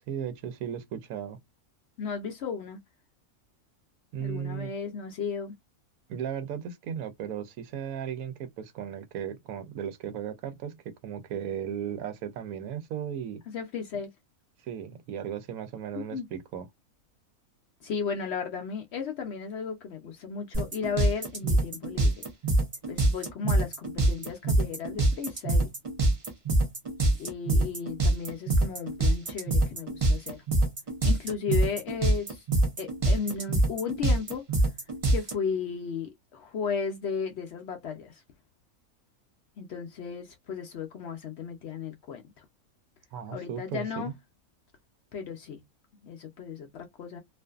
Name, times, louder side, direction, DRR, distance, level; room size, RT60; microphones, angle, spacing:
voice 1, 0.1-1.4 4.1-4.7 6.1-13.4 14.6-16.7 43.1-44.1, right 8 dB, 85° right, 1.1 m, -36 dB
voice 2, 2.0-2.8 4.2-5.6 13.5-14.1 15.9-16.3 17.8-22.2 22.9-25.7 27.2-30.4 31.0-32.4 32.8-34.5 35.1-38.2 39.6-42.5 43.3-44.1 45.1-45.6 46.0-47.2, left 6 dB, 65° left, 0.7 m, -35 dB
sound 1, 20.5-35.3, right 2 dB, 40° right, 0.5 m, -24 dB
2.5 x 2.5 x 2.2 m
omnidirectional pair, 1.5 m